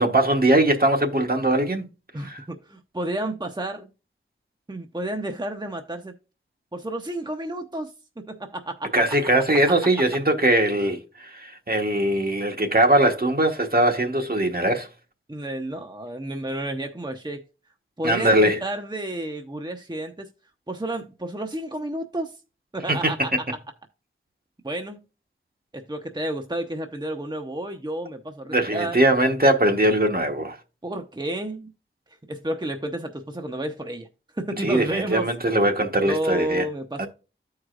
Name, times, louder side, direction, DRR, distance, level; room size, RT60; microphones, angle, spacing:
voice 1, 0.0-1.9 2.2-2.4 8.9-14.9 18.0-18.6 22.9-23.1 28.5-30.6 34.6-36.7 37.0-37.1, right 1 dB, 45° right, 1.2 m, -21 dB
voice 2, 2.1-3.9 4.7-6.1 6.7-9.0 15.3-17.5 18.0-20.3 20.7-22.4 22.7-23.6 24.6-25.0 25.7-29.0 30.8-31.7 32.3-34.1 34.3-35.3 36.0-37.1, right 1 dB, 20° right, 0.8 m, -31 dB
14.0 x 4.8 x 2.4 m
wide cardioid pair, 50°, 21 cm